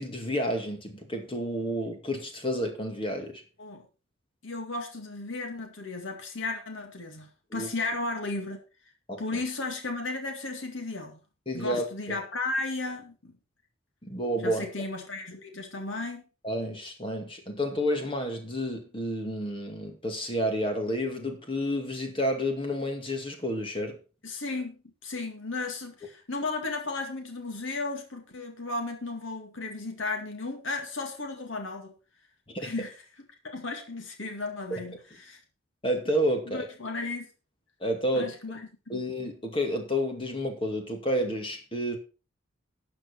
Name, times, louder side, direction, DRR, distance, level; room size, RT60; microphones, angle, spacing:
voice 1, 0.0-3.4 7.5-7.7 9.1-9.4 11.5-12.2 14.0-14.7 16.4-24.0 32.5-32.7 34.7-34.8 35.8-36.7 37.8-38.3 38.9-42.0, equal, 25° left, 2.2 m, -30 dB
voice 2, 4.4-8.6 9.2-11.2 11.5-13.3 14.4-16.2 24.2-31.9 32.6-32.9 33.4-35.4 36.5-37.3 38.1-38.6 38.9-39.1, left 3 dB, 75° left, 2.0 m, -34 dB
12.5 x 7.7 x 4.5 m
head